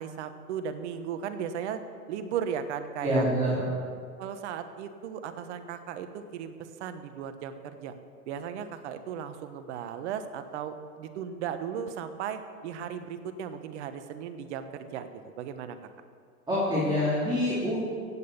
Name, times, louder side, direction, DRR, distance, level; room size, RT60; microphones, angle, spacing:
voice 1, 0.0-1.8 2.1-3.2 4.2-7.9 8.3-15.8, right 8 dB, 50° right, 9 dB, 1.3 m, -36 dB
voice 2, 3.0-3.7 16.5-17.8, equal, 10° right, -7 dB, 3.3 m, -26 dB
15.5 x 8.8 x 7.0 m, 2.1 s
hypercardioid pair, 125°, 45 cm